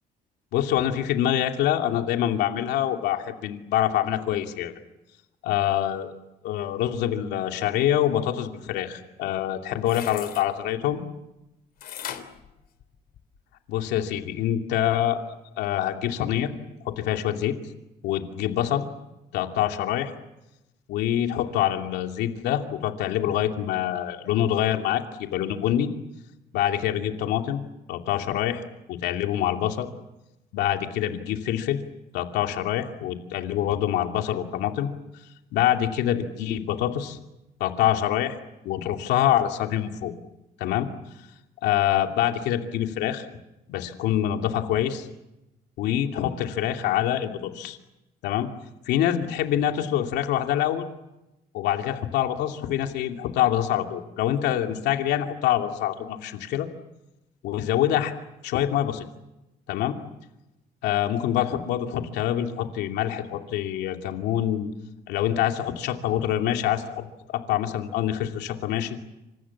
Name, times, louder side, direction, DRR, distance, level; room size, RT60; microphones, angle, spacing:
voice 1, 0.5-4.7 5.4-6.1 6.4-11.0 13.7-16.5 16.8-17.5 18.0-18.8 19.3-20.1 20.9-25.9 26.5-27.6 27.9-28.6 28.9-29.9 30.5-31.8 32.1-34.9 35.5-37.2 37.6-38.4 38.6-40.1 40.6-40.9 41.6-43.3 43.7-45.1 45.8-47.8 48.2-48.5 48.8-50.9 51.5-56.7 57.4-58.1 58.4-59.0 59.7-60.0 60.8-64.7 65.1-69.0, left 11 dB, 85° left, 4 dB, 2.7 m, -25 dB
sound 1, 9.5-10.5 11.8-13.4 13.8-13.9, left 10 dB, 65° left, 3.4 m, -39 dB
28.0 x 26.5 x 7.3 m, 0.93 s
cardioid pair, 110°, 17 cm